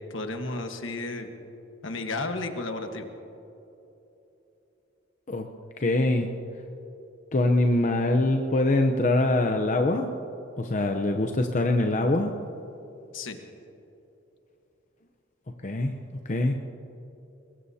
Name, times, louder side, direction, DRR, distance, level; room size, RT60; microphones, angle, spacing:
voice 1, 0.1-1.3 1.8-3.1 13.1-13.4, left 2 dB, 75° left, 5 dB, 1.4 m, -33 dB
voice 2, 5.8-6.3 7.3-10.1 10.6-12.3 15.6-15.9 16.3-16.5, left 2 dB, 40° left, 4 dB, 0.7 m, -23 dB
22.5 x 21.5 x 2.8 m, 3.0 s
head